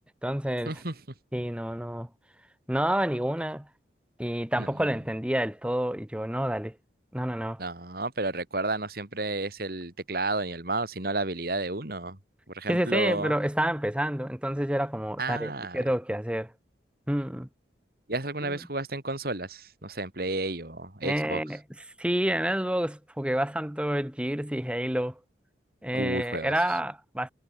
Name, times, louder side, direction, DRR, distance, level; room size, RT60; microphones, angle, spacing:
voice 1, 0.2-0.7 1.3-2.1 2.7-3.7 4.2-6.7 7.1-7.6 12.7-16.5 17.1-17.5 18.5-18.6 21.0-21.6 22.0-25.2 25.8-27.3, right 1 dB, 5° right, 1.0 m, -28 dB
voice 2, 7.6-12.2 12.5-13.3 15.2-15.8 18.1-21.4 25.9-26.5, right 2 dB, 55° right, 3.2 m, -31 dB
head